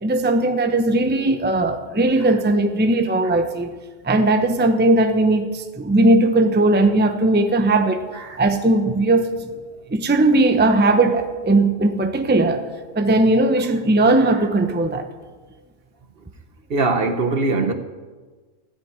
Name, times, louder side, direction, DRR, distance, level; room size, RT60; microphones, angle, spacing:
voice 1, 0.0-3.8 4.0-8.0 8.4-9.3 9.9-12.6 12.9-15.1, right 2 dB, 10° right, 0.7 m, -18 dB
voice 2, 16.7-17.7, right 3 dB, 50° right, 1.2 m, -21 dB
14.0 x 7.5 x 9.8 m
omnidirectional pair, 1.3 m